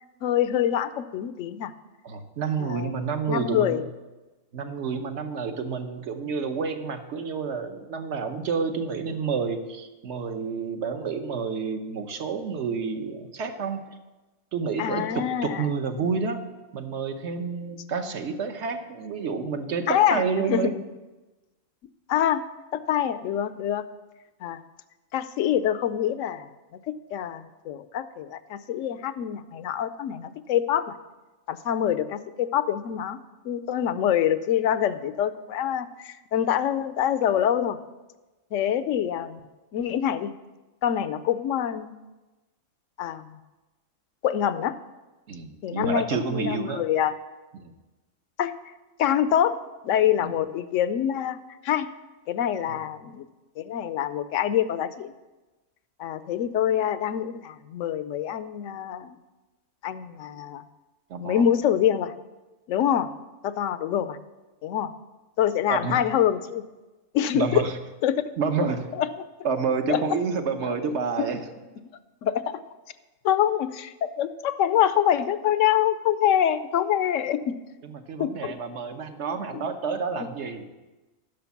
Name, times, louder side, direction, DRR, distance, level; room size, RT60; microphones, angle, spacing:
voice 1, 0.2-1.7 2.6-2.9 3.3-3.8 14.8-15.7 19.9-20.7 22.1-22.4 22.7-23.8 24.4-24.6 25.1-26.5 26.9-30.9 31.5-33.2 33.4-37.8 38.5-39.4 39.7-40.3 40.8-41.9 43.0-43.4 44.2-44.8 45.6-47.2 48.4-48.5 49.0-49.6 49.8-51.4 51.6-51.9 52.3-53.3 53.6-55.1 56.0-59.2 59.8-60.6 61.2-62.1 62.7-63.1 63.4-64.2 64.6-64.9 65.4-66.6 67.1-67.6 68.0-68.2 68.9-69.1 69.9-70.0 70.7-70.8 72.2-72.6 73.2-77.6 78.2-78.5 80.2-80.3, left 10 dB, 75° left, 14 dB, 0.9 m, -25 dB
voice 2, 2.0-3.8 4.5-13.8 14.5-16.4 16.7-20.8 45.3-46.8 47.5-47.7 50.2-50.4 61.1-61.5 65.7-66.0 67.3-67.7 68.4-68.9 69.4-71.4 77.8-80.7, right 5 dB, 60° right, 7 dB, 1.1 m, -29 dB
10.5 x 6.4 x 7.1 m, 1.1 s
omnidirectional pair, 1.4 m